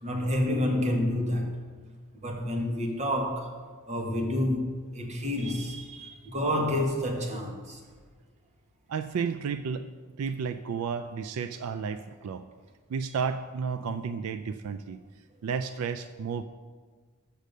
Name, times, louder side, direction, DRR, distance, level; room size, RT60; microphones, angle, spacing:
voice 1, 0.0-1.6 2.1-3.6 3.9-7.8, left 1 dB, 30° right, 1.1 m, -29 dB
voice 2, 8.9-9.9 10.2-12.4 12.9-15.0 15.4-16.4, right 6 dB, 75° right, 0.3 m, -32 dB
6.6 x 6.3 x 6.6 m
head